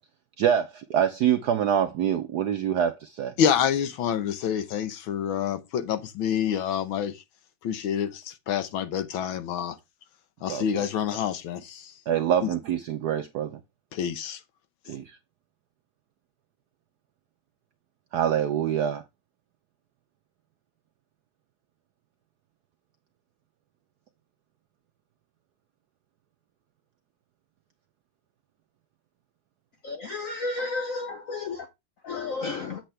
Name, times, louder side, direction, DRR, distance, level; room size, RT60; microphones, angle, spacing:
voice 1, 0.4-3.3 10.5-10.8 12.1-13.6 14.9-15.2 18.1-19.0, right 9 dB, 75° right, 0.9 m, -25 dB
voice 2, 3.4-7.2 7.6-9.8 10.4-11.9 12.4-12.5 13.9-14.4, left 8 dB, 70° left, 1.6 m, -27 dB
voice 3, 29.8-31.7 32.0-32.8, left 3 dB, 90° left, 0.7 m, -32 dB
7.9 x 7.5 x 3.2 m
omnidirectional pair, 2.4 m